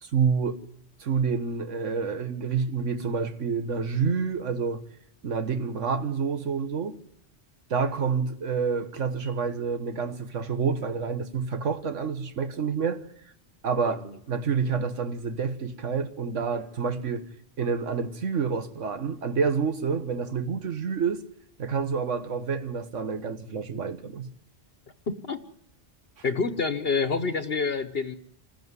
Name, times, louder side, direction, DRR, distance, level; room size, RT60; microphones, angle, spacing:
voice 1, 0.0-0.6 1.0-4.8 5.2-7.0 7.7-13.0 13.6-17.2 17.6-21.2 21.6-24.3 26.2-26.3, right 5 dB, 85° right, 1.6 m, -28 dB
voice 2, 25.1-25.4 26.2-28.2, left 4 dB, 55° left, 1.3 m, -27 dB
26.5 x 14.5 x 9.6 m
omnidirectional pair, 1.2 m